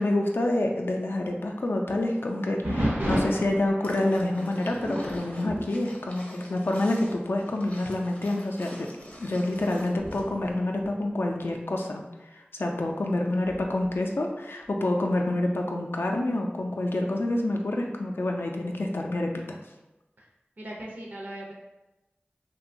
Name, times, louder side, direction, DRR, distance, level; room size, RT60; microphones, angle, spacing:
voice 1, 0.0-8.9 9.2-12.0 12.3-19.6, left 1 dB, 75° left, 1 dB, 0.3 m, -27 dB
sound 1, 2.6-6.8 7.1-7.5 8.1-8.2 8.9-11.6 13.5-14.0, equal, 70° right, 1.0 m, -33 dB
sound 2, 3.8-10.5 10.7-10.8, equal, 40° left, 0.6 m, -48 dB
voice 2, 20.6-21.5, right 1 dB, 55° right, -3 dB, 0.5 m, -39 dB
2.8 x 2.2 x 2.5 m, 1.0 s
wide cardioid pair, 45°, 4 cm